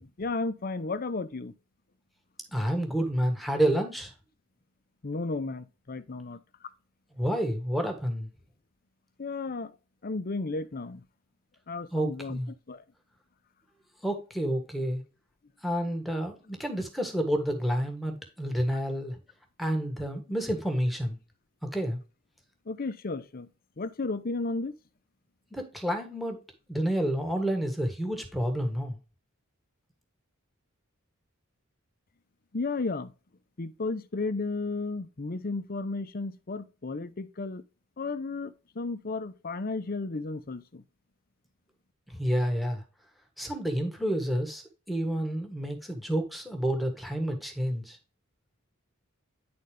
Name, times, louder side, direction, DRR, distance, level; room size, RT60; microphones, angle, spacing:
voice 1, 0.0-1.5 5.0-6.4 9.2-9.7 10.0-11.0 11.7-12.4 12.7-12.8 22.7-23.5 23.8-24.7 32.5-33.1 33.6-37.6 38.0-40.8, left 3 dB, 45° left, 0.7 m, -33 dB
voice 2, 2.5-4.1 7.2-8.3 11.9-12.5 14.0-15.0 15.6-19.2 19.6-21.2 21.7-22.0 25.5-26.4 26.7-28.9 42.2-42.8 43.4-44.6 44.9-48.0, equal, ahead, 1.5 m, -29 dB
10.5 x 4.1 x 3.3 m
head